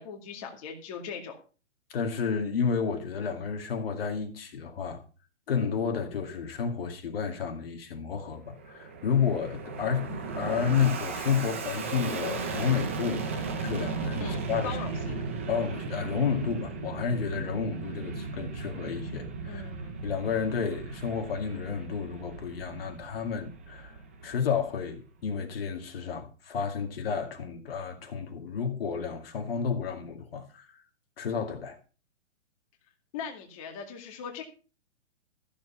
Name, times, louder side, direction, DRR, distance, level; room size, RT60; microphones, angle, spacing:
voice 1, 0.0-1.4 14.2-15.2 19.5-20.1 33.1-34.4, left 6 dB, 30° left, 2.2 m, -40 dB
voice 2, 1.9-5.0 5.5-14.8 15.5-19.7 20.0-30.8 31.2-31.8, left 6 dB, 50° left, 2.2 m, -31 dB
Fixed-wing aircraft airplane, 8.3-25.0, right 4 dB, 10° right, 0.5 m, -36 dB
14.0 x 7.3 x 5.7 m
hypercardioid pair, 170°, 37 cm